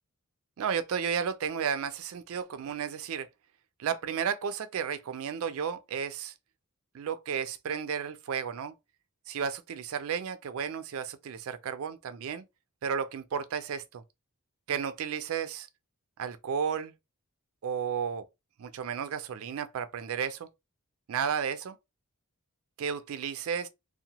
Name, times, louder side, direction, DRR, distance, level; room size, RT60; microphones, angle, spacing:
voice 1, 0.6-3.3 3.8-6.3 6.9-8.7 9.3-12.4 12.8-14.0 14.7-15.7 16.2-16.9 17.6-18.2 18.6-20.5 21.1-21.8 22.8-23.7, right 7 dB, 65° right, 0.4 m, -33 dB
2.7 x 2.1 x 2.8 m
head